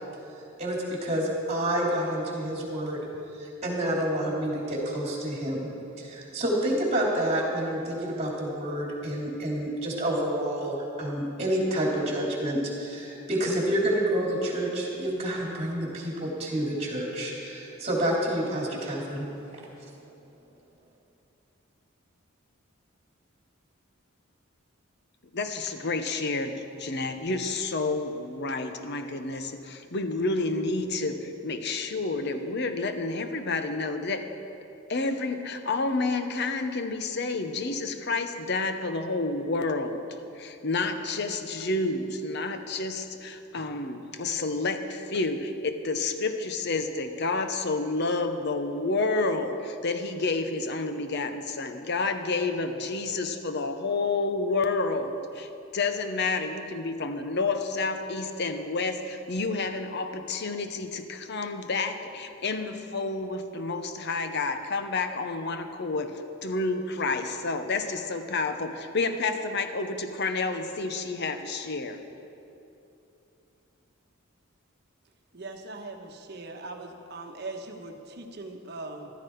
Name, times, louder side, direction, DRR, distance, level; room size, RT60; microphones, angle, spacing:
voice 1, 0.6-3.0 3.4-5.7 6.0-19.3, right 1 dB, 30° right, -3 dB, 3.0 m, -28 dB
voice 2, 25.3-34.3 34.9-40.0 40.4-72.0, left 3 dB, 55° left, 8 dB, 0.8 m, -29 dB
voice 3, 75.3-79.1, right 2 dB, 50° right, 4 dB, 1.2 m, -40 dB
14.5 x 13.0 x 4.6 m, 2.8 s
head